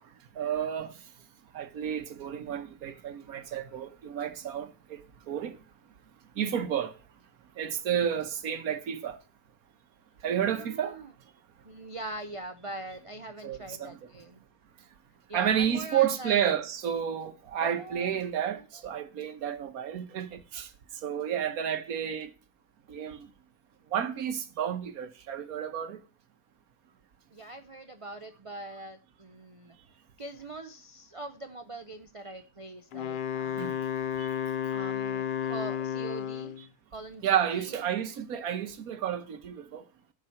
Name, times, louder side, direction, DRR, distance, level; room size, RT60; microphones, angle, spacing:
voice 1, 0.4-0.9 1.5-5.6 6.4-6.9 7.6-9.2 10.2-11.0 13.4-14.0 15.3-20.7 21.0-22.3 22.9-23.3 23.9-26.0 33.6-33.7 34.2-34.3 37.2-39.8, right 9 dB, 75° right, 1.4 m, -31 dB
voice 2, 10.4-11.1 11.6-14.4 15.3-16.4 17.6-18.1 18.7-18.8 27.3-29.8 30.2-33.9 34.7-36.5 36.9-37.8, right 2 dB, 55° right, 0.3 m, -43 dB
Wind instrument woodwind instrument, 32.9-36.7, left 9 dB, 80° left, 0.4 m, -32 dB
10.0 x 4.9 x 7.6 m
omnidirectional pair, 1.6 m